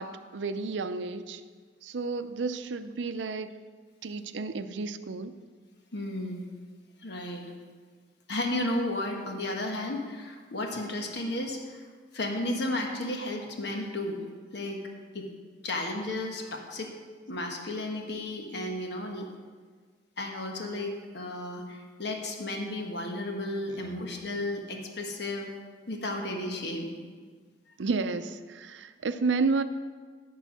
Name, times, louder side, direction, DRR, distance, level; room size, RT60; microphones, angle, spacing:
voice 1, 0.0-1.4 1.8-3.6 4.0-5.3 23.7-23.9 27.8-29.6, right 4 dB, 80° right, 11 dB, 0.5 m, -31 dB
voice 2, 5.9-6.4 7.0-7.5 8.3-11.8 12.1-14.2 14.5-14.8 15.1-15.3 15.6-16.9 17.3-19.3 20.2-25.5 25.9-26.9, left 1 dB, 65° left, 2 dB, 1.3 m, -33 dB
13.5 x 4.6 x 6.1 m, 1.5 s
head